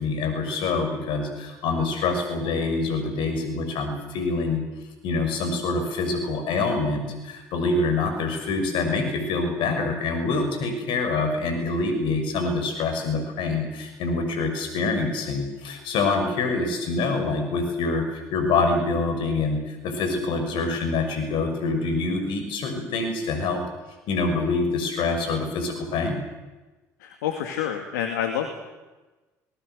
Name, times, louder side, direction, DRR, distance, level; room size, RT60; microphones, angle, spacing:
voice 1, 0.0-4.6 5.0-23.6 24.1-26.2, left 3 dB, 65° left, 6 dB, 6.2 m, -26 dB
voice 2, 27.0-28.5, left 9 dB, 80° left, 6 dB, 2.2 m, -28 dB
25.0 x 20.5 x 8.1 m, 1.2 s
hypercardioid pair, 60°, 9 cm